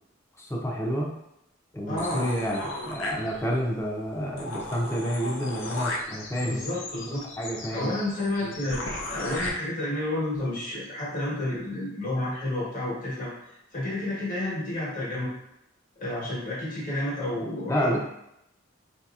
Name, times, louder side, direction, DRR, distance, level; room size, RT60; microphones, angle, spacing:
voice 1, 0.4-1.1 1.7-6.7 7.4-7.9 8.4-8.7 17.7-18.0, equal, 15° left, -1 dB, 0.5 m, -29 dB
voice 2, 1.9-2.3 6.5-7.2 7.7-8.8 9.1-13.3 13.7-15.3 16.0-18.0, left 1 dB, 40° left, -7 dB, 1.2 m, -30 dB
sound 1, 2.0-3.7 4.1-4.2 4.4-9.5, left 2 dB, 75° left, 0.6 m, -36 dB
4.1 x 2.8 x 2.4 m, 0.83 s
head